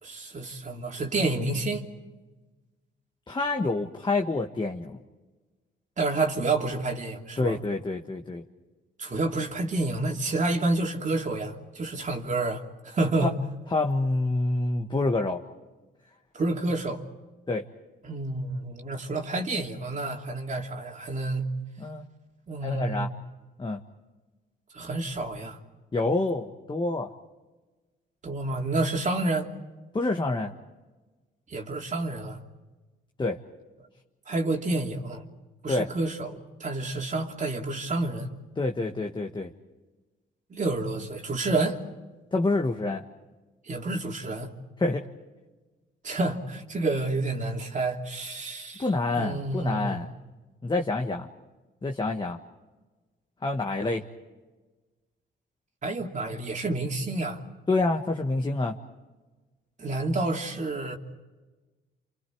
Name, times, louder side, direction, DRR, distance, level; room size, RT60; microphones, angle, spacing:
voice 1, 0.0-1.9 6.0-7.6 9.0-13.3 16.3-17.0 18.0-21.5 22.5-23.1 24.7-25.6 28.2-29.5 31.5-32.4 34.3-35.2 35.6-38.3 40.5-41.8 43.6-44.5 46.0-48.8 49.1-50.0 55.8-57.4 59.8-61.0, right 2 dB, 40° right, 3.0 m, -29 dB
voice 2, 3.3-5.0 7.4-8.4 13.7-15.4 17.5-17.6 21.8-22.0 22.6-23.1 23.6-23.8 25.9-27.1 29.9-30.5 33.2-33.4 35.7-35.9 38.6-39.5 42.3-43.0 44.8-45.0 48.8-50.2 50.6-51.3 51.8-52.4 53.4-54.0 57.7-58.7, left 2 dB, 25° left, 1.6 m, -27 dB
30.0 x 27.5 x 4.7 m
cardioid pair, 90°, 20 cm